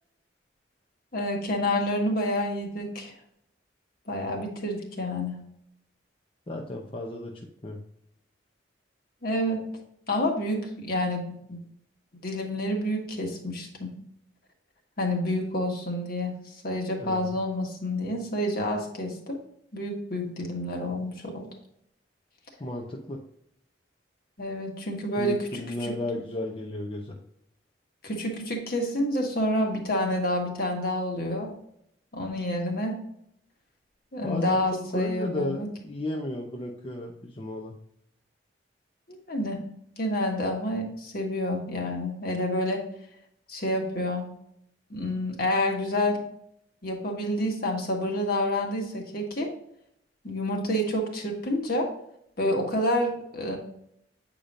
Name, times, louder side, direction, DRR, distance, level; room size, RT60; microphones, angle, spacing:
voice 1, 1.1-3.1 4.1-5.4 9.2-9.6 10.1-11.2 11.5-11.6 12.2-13.9 15.0-16.4 16.6-19.4 19.7-21.5 24.4-25.9 28.0-31.5 32.1-32.9 34.1-35.7 39.3-39.6 40.0-42.8 43.5-44.3 44.9-46.2 46.8-49.5 50.2-51.9 52.4-53.6, left 1 dB, 55° left, 2 dB, 1.5 m, -28 dB
voice 2, 6.5-7.8 17.0-17.3 22.6-23.2 25.2-27.2 34.2-37.7, left 1 dB, 30° left, 0 dB, 0.7 m, -33 dB
8.5 x 5.1 x 2.6 m, 0.72 s
head